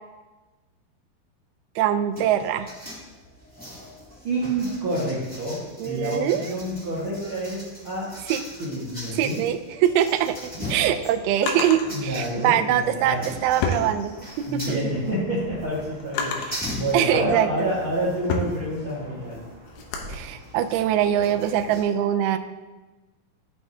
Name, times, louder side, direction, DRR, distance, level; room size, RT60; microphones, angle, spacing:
voice 1, 1.8-2.7 5.8-6.5 8.3-8.4 9.1-15.1 16.4-16.5 16.9-17.7 20.1-22.4, right 10 dB, 85° right, 7 dB, 2.2 m, -23 dB
sound 1, 2.1-21.8, left 1 dB, 10° left, 0.5 m, -41 dB
voice 2, 4.2-8.2 8.6-9.4 10.6-10.7 11.9-13.3 14.5-19.4, right 1 dB, 65° right, -7 dB, 1.2 m, -28 dB
Drawer open or close, 10.4-11.9 12.9-14.5 15.0-16.7 17.3-20.2, left 4 dB, 75° left, 2.6 m, -32 dB
sound 2, 11.8-21.8, left 1 dB, 10° right, 1.9 m, -42 dB
14.5 x 5.7 x 2.8 m, 1.2 s
omnidirectional pair, 5.1 m